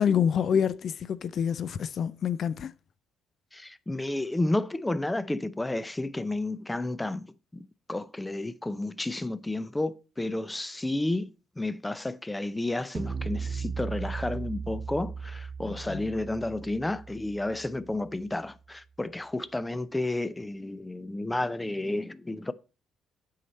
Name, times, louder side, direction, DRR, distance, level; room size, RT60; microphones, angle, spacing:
voice 1, 0.0-2.7 15.9-16.0, left 8 dB, 55° left, 0.4 m, -27 dB
voice 2, 3.5-7.3 7.5-11.3 11.6-22.5, left 2 dB, 15° left, 0.6 m, -31 dB
sound 1, 12.9-18.3, right 5 dB, 45° right, 0.6 m, -37 dB
8.2 x 5.7 x 4.3 m
cardioid pair, 80°, 0 cm